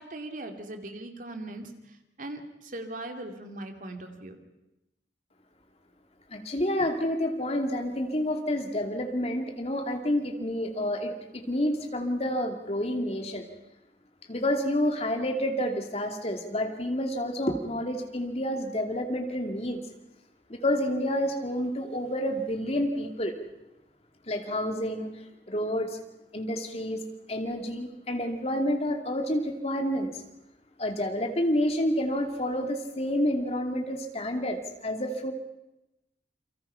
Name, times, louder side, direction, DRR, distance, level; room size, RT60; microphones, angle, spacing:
voice 1, 0.0-4.4, right 1 dB, 50° right, 5 dB, 2.7 m, -40 dB
voice 2, 6.3-13.4 14.3-19.8 20.5-23.3 24.3-25.1 25.5-26.0 26.3-27.0 27.3-30.2 30.8-35.3, left 1 dB, 35° left, 4 dB, 2.6 m, -29 dB
29.0 x 24.0 x 5.7 m, 0.93 s
head